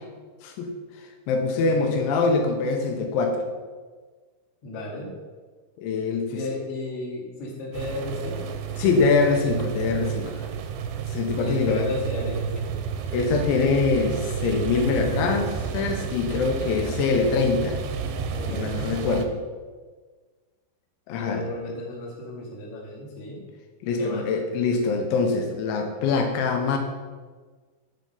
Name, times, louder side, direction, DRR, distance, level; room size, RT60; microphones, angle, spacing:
voice 1, 0.4-0.7 1.3-3.4 5.8-6.4 8.7-10.5 11.1-11.9 13.1-17.8 18.4-19.3 21.1-21.5 23.8-26.8, left 4 dB, 85° left, 4 dB, 3.3 m, -24 dB
voice 2, 1.6-2.0 4.6-5.1 6.3-8.5 11.4-12.8 18.3-18.8 21.1-23.4 24.0-24.3, left 2 dB, 45° left, -3 dB, 2.1 m, -34 dB
sound 1, 7.7-19.3, right 7 dB, 80° right, 2.7 m, -31 dB
10.0 x 5.4 x 5.3 m, 1.4 s
omnidirectional pair, 5.3 m